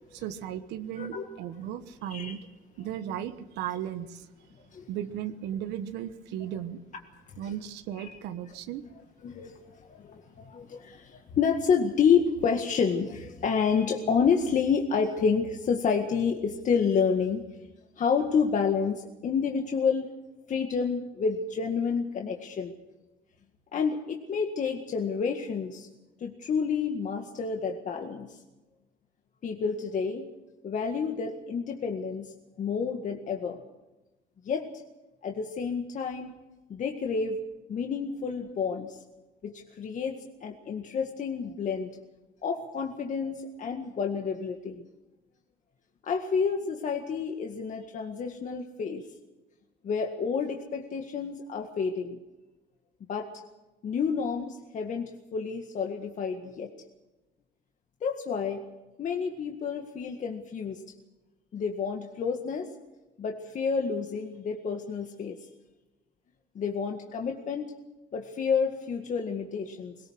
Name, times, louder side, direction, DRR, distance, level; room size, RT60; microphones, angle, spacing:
voice 1, 0.1-2.4 2.8-4.3 4.9-6.8 7.4-8.8, right 10 dB, 90° right, 8 dB, 1.3 m, -36 dB
voice 2, 1.0-1.3 2.1-2.3 4.7-4.9 6.4-6.5 7.4-7.5 8.0-8.2 9.2-17.5 18.0-20.1 20.5-22.7 23.7-25.9 26.2-28.4 29.4-30.3 30.6-33.6 34.4-34.7 35.2-36.3 36.7-37.4 37.7-39.0 39.4-41.9 42.4-44.8 46.0-49.1 49.8-52.2 53.1-53.3 53.8-56.7 58.0-58.6 59.0-60.8 61.5-62.7 63.2-65.4 66.6-67.7 68.1-69.9, left 6 dB, 50° left, 3 dB, 1.9 m, -29 dB
21.5 x 19.5 x 6.4 m, 1.1 s
cardioid pair, 110°, 17 cm